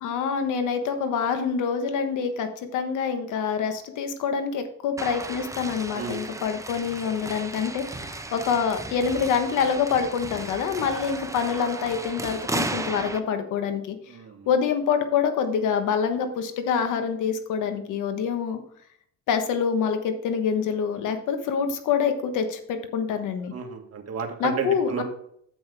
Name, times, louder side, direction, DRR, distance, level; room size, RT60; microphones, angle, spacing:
voice 1, 0.0-14.0 14.5-18.6 19.3-23.5 24.4-25.0, left 6 dB, 90° left, 8 dB, 1.3 m, -26 dB
sound 1, 5.0-13.2, right 2 dB, 10° right, 0.8 m, -35 dB
voice 2, 14.1-14.5 23.5-25.0, right 6 dB, 55° right, 3 dB, 1.8 m, -32 dB
8.7 x 7.9 x 3.4 m, 0.68 s
cardioid pair, 90°, 30 cm